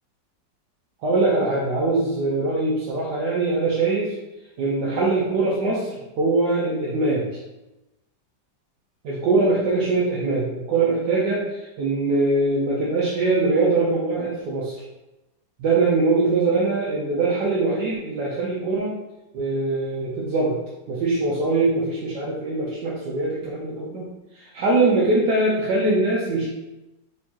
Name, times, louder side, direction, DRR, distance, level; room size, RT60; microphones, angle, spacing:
voice 1, 1.0-4.2 4.6-7.3 9.0-14.8 15.6-19.0 19.3-20.6 20.9-24.1 24.3-26.5, right 3 dB, 70° right, -5 dB, 1.3 m, -22 dB
4.3 x 3.9 x 2.8 m, 0.99 s
omnidirectional pair, 2.0 m